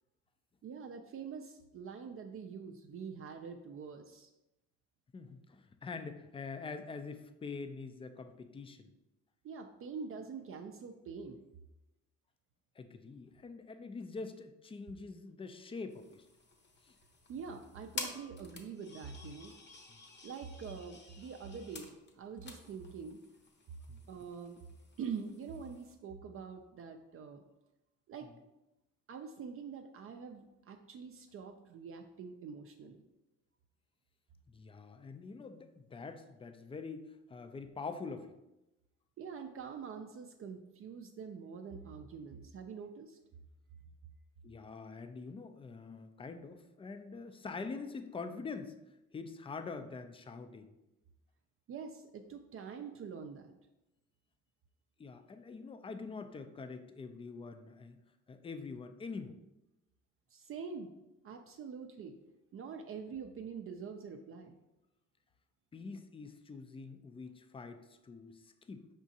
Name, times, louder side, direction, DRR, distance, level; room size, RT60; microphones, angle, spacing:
voice 1, 0.6-4.3 9.4-11.4 17.3-19.5 20.2-23.2 24.1-24.6 25.0-27.4 28.1-28.3 29.1-33.0 39.2-43.2 51.7-53.5 60.3-60.9 61.2-62.2 62.5-64.6, right 6 dB, 45° right, 5 dB, 0.4 m, -45 dB
voice 2, 5.1-8.9 12.8-16.3 16.8-17.0 19.9-20.0 23.9-24.1 34.5-38.4 44.4-48.8 49.1-50.7 55.0-58.0 58.3-59.4 65.7-68.9, left 4 dB, 20° left, 9 dB, 0.3 m, -45 dB
sound 1, 15.9-25.9, left 3 dB, 35° left, 0.8 m, -50 dB
4.9 x 3.6 x 2.7 m, 0.95 s
cardioid pair, 90°, 30 cm